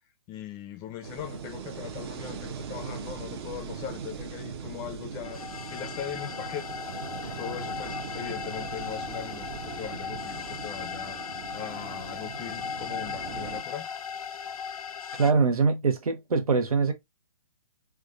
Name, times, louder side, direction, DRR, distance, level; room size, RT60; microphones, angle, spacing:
voice 1, 0.3-6.8 7.2-11.2 11.5-13.9, left 10 dB, 20° left, 0.5 m, -40 dB
sound 1, 1.0-13.6, right 7 dB, 45° right, 0.8 m, -40 dB
sound 2, 5.2-15.3, left 7 dB, 80° left, 0.5 m, -37 dB
voice 2, 15.2-16.9, right 4 dB, 80° right, 1.0 m, -23 dB
3.6 x 3.3 x 2.5 m
hypercardioid pair, 140°, 18 cm